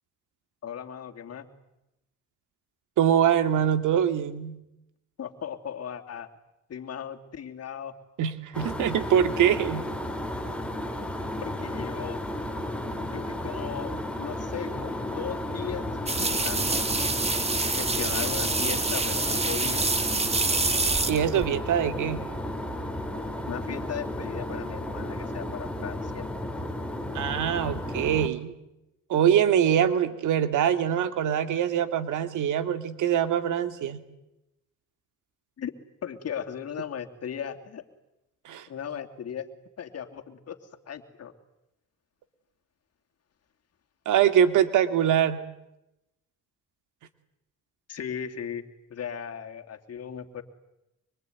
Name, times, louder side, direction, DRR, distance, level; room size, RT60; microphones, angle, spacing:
voice 1, 0.6-1.5 5.2-6.3 6.7-7.9 11.4-12.2 13.1-16.9 17.8-19.9 23.5-26.3 35.6-35.7 36.0-37.8 38.7-39.5 39.8-40.6 40.9-41.3 47.9-48.6 48.9-50.4, left 8 dB, 55° left, 6 dB, 2.9 m, -37 dB
voice 2, 3.0-4.6 8.2-9.8 21.1-22.2 27.1-28.6 29.1-34.0 38.4-38.7 44.1-45.4, right 9 dB, 80° right, 10 dB, 2.3 m, -23 dB
sound 1, 8.5-28.3, left 1 dB, 5° left, 4.0 m, -33 dB
sound 2, 16.1-21.6, right 3 dB, 20° right, 2.1 m, -26 dB
25.0 x 24.0 x 9.4 m, 0.89 s
cardioid pair, 90°, 30 cm